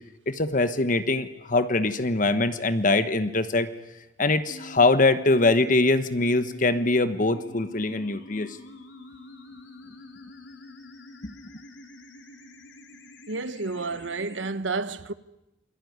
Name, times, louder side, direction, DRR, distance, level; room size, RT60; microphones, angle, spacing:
voice 1, 0.3-3.7 4.2-8.6 11.2-11.3, left 2 dB, 45° left, 1.2 m, -23 dB
sound 1, 4.5-14.5, left 1 dB, 80° left, 4.1 m, -45 dB
voice 2, 13.3-15.1, right 3 dB, 90° right, 1.2 m, -30 dB
28.0 x 22.0 x 9.5 m
head